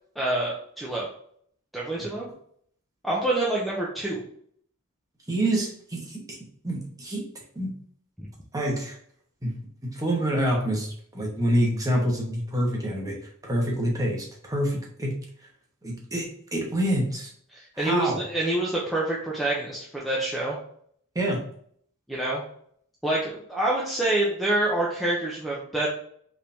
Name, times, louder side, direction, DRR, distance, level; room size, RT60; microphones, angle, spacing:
voice 1, 0.2-1.1 1.7-2.3 3.0-4.2 8.2-8.3 17.5-20.6 22.1-22.4 23.0-25.9, right 1 dB, ahead, -5 dB, 0.7 m, -27 dB
voice 2, 5.3-6.2 6.6-7.2 7.5-7.7 8.5-9.0 9.4-9.5 9.9-13.2 13.4-15.1 15.8-17.3 17.8-18.2 21.1-21.4, right 1 dB, 15° right, -2 dB, 1.2 m, -26 dB
4.8 x 3.5 x 2.7 m, 0.62 s
head